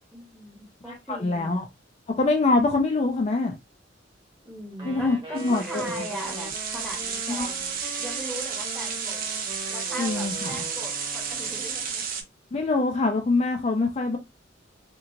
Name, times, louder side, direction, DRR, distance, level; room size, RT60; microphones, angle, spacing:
voice 1, 0.1-1.6 4.4-9.3 9.7-12.1, right 1 dB, ahead, 0.9 m, -39 dB
voice 2, 0.9-1.6 2.2-3.5 4.8-5.8 7.3-7.6 10.0-10.6 12.5-14.2, left 3 dB, 35° left, 0.4 m, -24 dB
Wind instrument woodwind instrument, 4.7-12.0, right 2 dB, 25° right, 1.2 m, -40 dB
sound 1, 5.4-12.2, right 6 dB, 50° right, 0.6 m, -32 dB
2.9 x 2.7 x 2.4 m
head